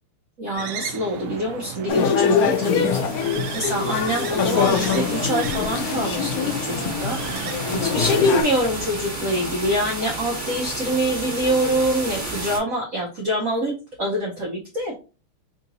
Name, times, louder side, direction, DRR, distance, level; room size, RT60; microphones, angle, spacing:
voice 1, 0.4-13.7 14.0-15.0, equal, 55° right, -2 dB, 1.0 m, -25 dB
sound 1, 0.5-8.2, right 9 dB, 85° right, 0.9 m, -35 dB
sound 2, 1.9-8.4, left 6 dB, 85° left, 0.8 m, -23 dB
sound 3, 2.2-12.6, right 2 dB, 10° right, 1.0 m, -33 dB
3.7 x 2.6 x 4.0 m, 0.33 s
omnidirectional pair, 2.4 m